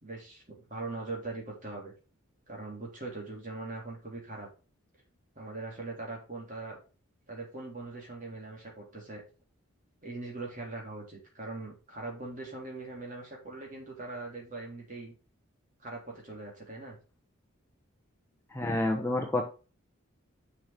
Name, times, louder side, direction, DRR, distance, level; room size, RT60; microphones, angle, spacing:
voice 1, 0.0-1.9 2.5-4.5 5.4-6.8 7.3-9.2 10.0-15.1 15.8-17.0, right 2 dB, 35° right, -2 dB, 3.6 m, -41 dB
voice 2, 18.5-19.4, left 1 dB, 10° left, 1 dB, 0.9 m, -28 dB
7.1 x 6.6 x 4.3 m, 0.34 s
head